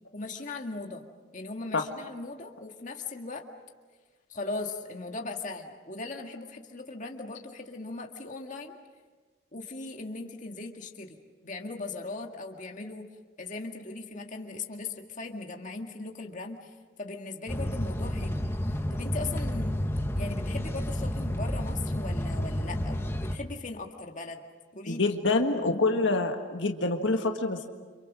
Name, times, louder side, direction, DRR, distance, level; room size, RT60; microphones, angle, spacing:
voice 1, 0.1-1.0 1.3-3.5 4.3-8.8 9.5-13.1 13.4-18.5 18.9-19.8 20.1-24.4 24.7-25.1, left 3 dB, 40° left, 2 dB, 2.0 m, -39 dB
sound 1, 17.5-23.4, left 1 dB, 15° left, 1.1 m, -30 dB
voice 2, 24.9-27.7, left 3 dB, 70° left, 4 dB, 1.7 m, -26 dB
29.5 x 27.0 x 6.3 m, 1.4 s
head